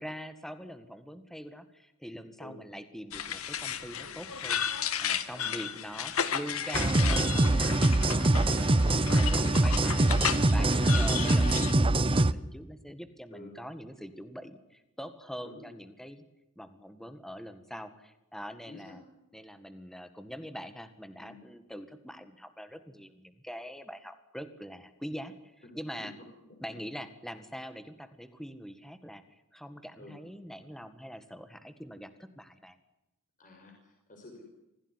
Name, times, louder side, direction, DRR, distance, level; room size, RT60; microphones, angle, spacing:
voice 1, 0.0-4.6 5.0-16.2 16.6-19.0 19.3-25.3 25.7-26.1 26.6-32.8, equal, ahead, 10 dB, 1.8 m, -44 dB
sound 1, 3.1-11.7, left 8 dB, 90° left, 1.9 m, -34 dB
voice 2, 5.3-5.9 13.3-13.5 15.4-15.7 18.7-19.0 21.2-21.4 26.0-26.1 26.4-26.5 30.0-30.1 33.4-34.4, left 2 dB, 40° left, 1 dB, 5.8 m, -50 dB
sound 2, 6.7-12.3, right 2 dB, 25° right, 0.8 m, -24 dB
26.5 x 16.5 x 9.8 m, 0.95 s
head